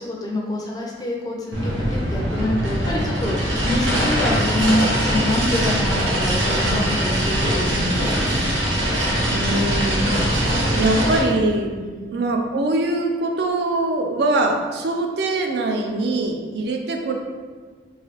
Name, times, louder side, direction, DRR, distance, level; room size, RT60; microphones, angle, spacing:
voice 1, 0.0-8.4 11.8-11.9, left 1 dB, 20° left, -1 dB, 0.4 m, -26 dB
sound 1, 1.5-11.2, equal, 90° right, 0.8 m, -22 dB
voice 2, 9.2-11.7 12.1-17.1, right 2 dB, 65° right, 3 dB, 0.4 m, -23 dB
3.1 x 2.7 x 2.9 m, 1.5 s
head